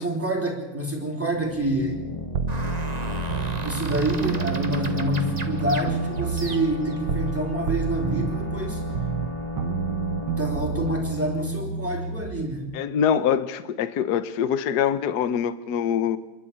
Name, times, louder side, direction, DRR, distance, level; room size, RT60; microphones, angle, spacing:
voice 1, 0.0-2.1 3.6-8.8 10.4-12.7, right 1 dB, 5° right, 0 dB, 3.8 m, -27 dB
sound 1, 1.3-12.8, left 2 dB, 20° left, 1.2 m, -34 dB
sound 2, 2.3-7.4 7.7-12.4, right 6 dB, 80° right, 1.8 m, -30 dB
sound 3, 2.5-7.0, right 3 dB, 25° right, 1.3 m, -37 dB
voice 2, 12.7-16.2, left 8 dB, 60° left, 13 dB, 1.4 m, -24 dB
27.0 x 12.0 x 8.7 m, 1.1 s
omnidirectional pair, 2.1 m